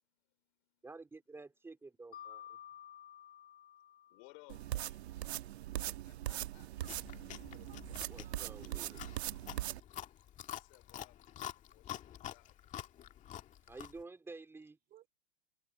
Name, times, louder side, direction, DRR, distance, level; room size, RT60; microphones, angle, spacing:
voice 1, 0.0-0.9 2.2-3.5 4.1-5.0 6.0-6.9 10.5-12.8, left 30 dB, 40° left, 3.1 m, -64 dB
voice 2, 0.8-2.6 8.1-9.0 13.7-14.8, right 3 dB, 5° right, 3.7 m, -51 dB
Mallet percussion, 2.1-4.9, left 10 dB, 80° left, 2.5 m, -53 dB
sound 1, 4.5-9.8, right 14 dB, 70° right, 1.3 m, -41 dB
Chewing mastication, 6.8-14.0, left 11 dB, 20° left, 2.0 m, -48 dB
voice 3, 7.4-8.9 14.9-15.1, right 13 dB, 25° right, 4.1 m, -64 dB
hypercardioid pair, 150°, 33 cm